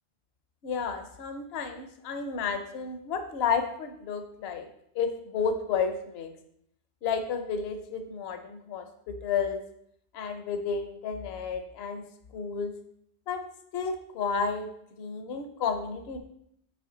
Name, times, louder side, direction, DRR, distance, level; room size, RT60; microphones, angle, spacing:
voice 1, 0.6-4.7 5.0-6.3 7.0-9.6 10.1-12.0 12.3-12.7 13.3-13.4 13.7-14.7 15.0-16.2, left 6 dB, 70° left, 7 dB, 0.9 m, -31 dB
6.9 x 4.4 x 3.8 m, 0.73 s
omnidirectional pair, 1.1 m